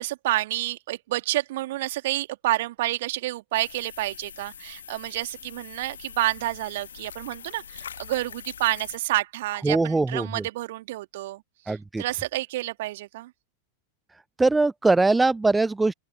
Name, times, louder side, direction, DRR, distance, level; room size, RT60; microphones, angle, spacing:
voice 1, 0.0-13.3, right 16 dB, 55° right, 2.5 m, -29 dB
sound 1, 3.5-9.0, left 8 dB, 65° left, 1.8 m, -43 dB
voice 2, 9.6-10.3 11.7-12.0 14.4-15.9, right 3 dB, 10° right, 0.3 m, -21 dB
open air
figure-of-eight pair, 90°, 0 cm